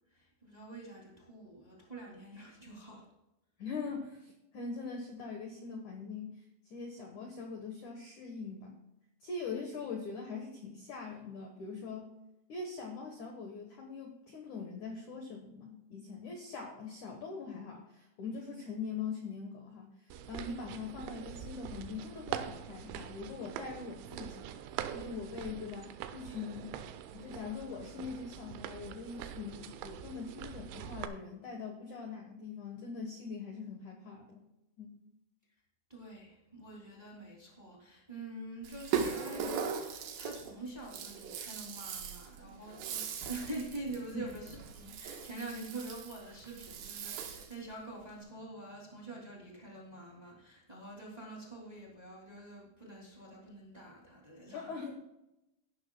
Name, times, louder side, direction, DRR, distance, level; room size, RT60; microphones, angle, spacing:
voice 1, 0.1-3.0 35.9-54.7, right 2 dB, 20° right, -3 dB, 1.1 m, -46 dB
voice 2, 3.6-8.8 9.2-12.1 12.5-26.7 27.1-34.4 34.8-35.0 44.1-44.3 54.5-55.0, left 4 dB, 75° left, 2 dB, 1.8 m, -42 dB
sound 1, 20.1-31.1, right 10 dB, 85° right, 3.2 m, -44 dB
Rattle (instrument), 38.6-47.6, right 7 dB, 65° right, 2.7 m, -39 dB
15.5 x 11.5 x 2.3 m, 0.91 s
omnidirectional pair, 5.4 m